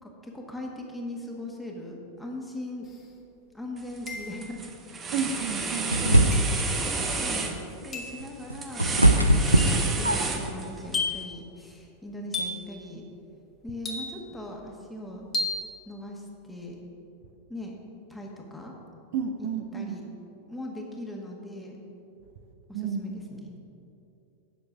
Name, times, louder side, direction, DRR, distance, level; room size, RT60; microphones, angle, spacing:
voice 1, 0.0-2.9 3.5-4.6 6.1-13.0 13.6-15.3 15.8-16.8 17.5-18.7 19.4-20.1 20.5-21.8 22.7-23.7, left 1 dB, 5° left, -1 dB, 1.5 m, -40 dB
sound 1, 2.9-3.0 4.1-4.6 6.3-6.7 7.9-8.2 9.6-9.9 10.9-11.4 12.3-12.7 13.9-14.4 15.3-15.7, left 3 dB, 20° left, 1.5 m, -33 dB
sound 2, 3.8-4.1 4.4-10.9, right 4 dB, 20° right, 1.0 m, -31 dB
voice 2, 5.1-6.3 19.1-20.0 22.7-23.0, right 7 dB, 50° right, 6 dB, 0.7 m, -31 dB
sound 3, 5.9-6.7 8.2-10.5, right 1 dB, 85° right, 0.5 m, -20 dB
9.3 x 6.5 x 6.2 m, 2.9 s
figure-of-eight pair, 90°, 0 cm